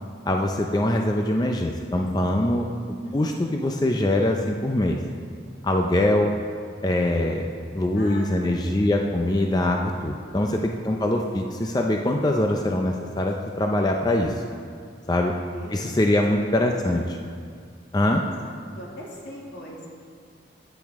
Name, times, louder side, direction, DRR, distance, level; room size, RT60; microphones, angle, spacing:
voice 1, 0.3-2.8 3.1-5.0 5.6-6.3 6.8-14.4 15.1-15.3 15.7-17.0 17.9-18.2, left 1 dB, 20° left, 2 dB, 0.4 m, -23 dB
voice 2, 2.8-3.2 7.9-9.0 15.5-15.8 16.7-17.2 18.2-19.9, equal, 75° left, -3 dB, 2.2 m, -41 dB
12.0 x 9.1 x 3.6 m, 2.2 s
head